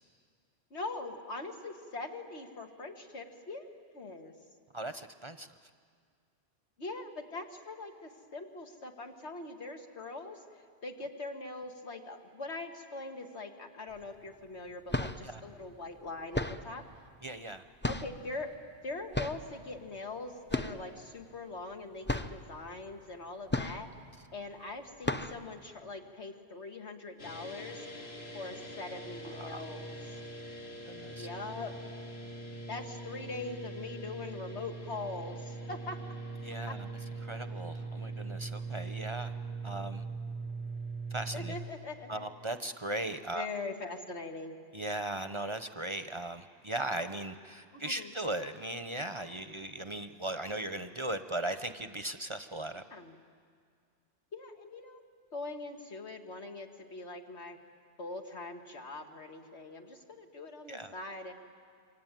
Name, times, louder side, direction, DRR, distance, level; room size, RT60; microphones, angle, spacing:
voice 1, 0.7-3.7 3.9-4.3 6.8-16.8 17.9-18.6 18.8-23.9 24.3-28.0 28.3-30.2 31.1-31.8 32.7-36.0 36.7-36.8 41.3-42.3 43.3-44.6 47.7-48.1 52.9-53.2 54.3-55.1 55.3-57.6 58.0-61.3, left 3 dB, 85° left, 4 dB, 2.2 m, -42 dB
voice 2, 4.7-5.5 15.0-15.4 17.2-17.6 29.4-29.6 30.9-31.3 36.4-36.9 37.2-39.3 39.6-40.0 41.1-41.5 42.1-43.5 44.7-52.8 60.7-60.9, right 1 dB, 30° right, 10 dB, 0.7 m, -38 dB
sound 1, 13.9-14.0 14.7-15.3 16.3-16.8 17.8-18.3 19.1-19.5 20.5-20.9 21.2-21.3 21.7-21.8 22.1-22.4 23.5-24.1 24.5-24.6 25.0-25.5, left 2 dB, 10° left, 0.6 m, -34 dB
sound 2, 27.2-41.5, right 3 dB, 70° left, 2.6 m, -41 dB
27.0 x 23.5 x 9.1 m, 2.1 s
omnidirectional pair, 1.1 m